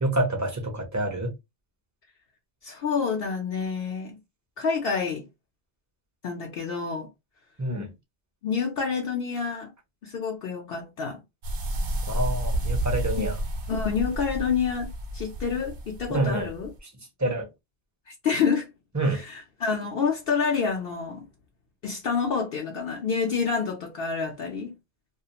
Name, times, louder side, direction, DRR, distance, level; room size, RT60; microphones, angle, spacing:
voice 1, 0.0-1.3 7.6-7.9 12.1-13.4 16.1-16.5 16.8-16.9 17.2-17.5 18.9-19.2, right 1 dB, 20° right, 0.6 m, -27 dB
voice 2, 2.6-4.2 4.6-5.3 6.2-7.1 8.4-9.7 10.0-11.2 13.2-13.3 13.7-16.7 18.2-18.7 19.3-21.3 21.8-24.7, left 5 dB, 65° left, 0.7 m, -28 dB
sound 1, 11.4-16.8, right 1 dB, 60° right, 0.8 m, -30 dB
2.4 x 2.3 x 2.8 m
omnidirectional pair, 1.1 m